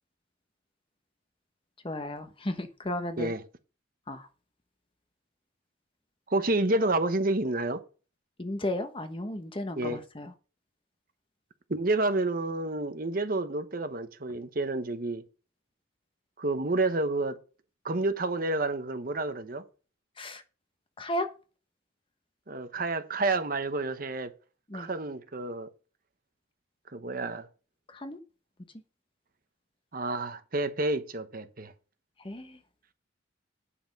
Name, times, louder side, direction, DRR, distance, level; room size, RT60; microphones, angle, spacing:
voice 1, 1.8-3.3 4.1-4.3 8.4-10.3 20.2-20.4 21.0-21.3 24.7-24.9 27.9-28.2 32.2-32.6, left 1 dB, 25° left, 1.0 m, -34 dB
voice 2, 6.3-7.8 9.8-10.0 11.7-15.2 16.4-17.4 17.8-19.7 22.5-24.3 24.7-25.7 26.9-27.5 29.9-31.7, right 2 dB, 45° right, 1.0 m, -29 dB
9.6 x 5.8 x 5.4 m
head